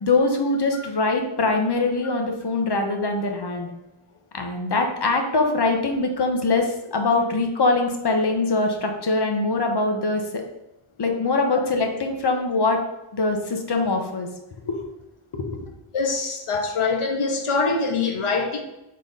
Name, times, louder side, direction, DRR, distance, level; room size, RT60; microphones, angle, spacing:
voice 1, 0.0-3.7 4.3-10.2 11.0-12.8 13.1-14.3 14.7-14.8 15.3-15.4, left 3 dB, 50° left, 3 dB, 1.1 m, -23 dB
voice 2, 15.9-18.6, left 4 dB, 80° left, 3 dB, 1.2 m, -24 dB
4.5 x 3.9 x 5.4 m, 0.95 s
wide cardioid pair, 95°, 50 cm